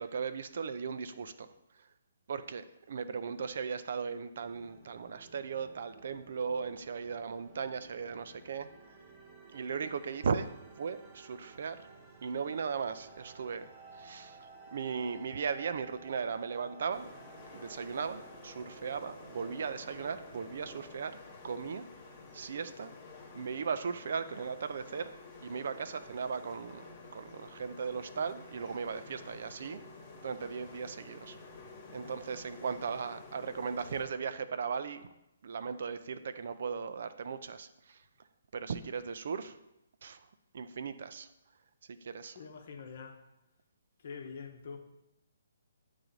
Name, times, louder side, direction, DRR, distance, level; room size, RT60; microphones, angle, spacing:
voice 1, 0.0-1.5 2.3-8.7 9.5-10.5 10.8-11.8 12.2-13.7 14.0-14.4 14.7-17.1 17.5-21.2 21.4-21.9 22.3-22.9 23.3-25.1 25.4-29.8 30.2-31.4 31.9-35.0 35.4-38.0 38.5-39.6 40.0-40.2 40.5-41.3 42.0-42.4, right 6 dB, 60° right, 0.4 m, -37 dB
sound 1, 4.4-21.0, right 3 dB, 20° right, 0.9 m, -55 dB
sound 2, 16.9-34.0, left 3 dB, 30° left, 1.2 m, -51 dB
voice 2, 42.3-43.2 44.0-44.8, left 5 dB, 55° left, 0.8 m, -45 dB
8.7 x 3.2 x 3.9 m
figure-of-eight pair, 140°, 0 cm